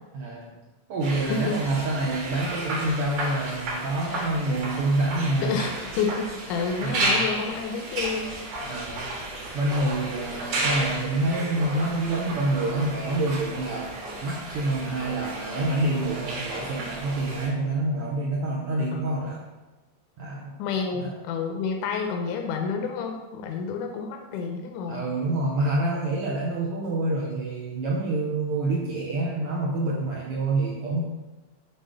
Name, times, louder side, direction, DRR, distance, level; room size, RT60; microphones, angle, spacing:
voice 1, 0.1-0.6 0.9-5.6 6.8-7.3 8.6-9.1 9.5-19.4 20.2-20.6 20.9-21.1 24.9-31.0, right 2 dB, 80° right, -3 dB, 1.3 m, -27 dB
sound 1, 1.0-17.5, right 2 dB, 60° right, 2.3 m, -33 dB
voice 2, 1.3-1.6 5.4-8.3 18.9-19.4 20.6-25.1, left 5 dB, 80° left, 3 dB, 2.1 m, -29 dB
7.8 x 3.7 x 5.1 m, 1.1 s
omnidirectional pair, 3.6 m